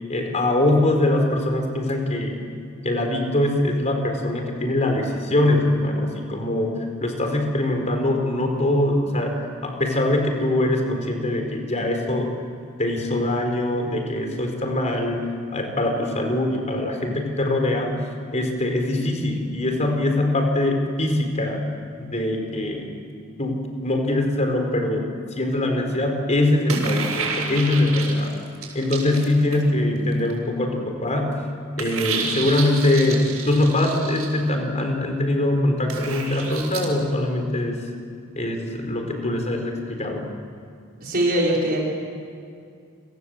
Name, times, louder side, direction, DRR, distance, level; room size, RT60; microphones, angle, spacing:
voice 1, 0.1-2.4 2.8-6.7 7.0-12.3 12.8-18.0 18.3-21.6 22.0-22.9 23.4-25.1 25.4-28.4 28.7-31.4 31.7-37.8 38.3-40.3, left 1 dB, 35° left, 3 dB, 4.5 m, -23 dB
sound 1, 26.7-29.8 30.1-30.3 31.8-34.3 35.9-36.9, right 5 dB, 85° right, 7.6 m, -30 dB
voice 2, 41.0-41.8, right 1 dB, 45° right, -3 dB, 6.1 m, -21 dB
29.5 x 25.0 x 8.0 m, 2.4 s
head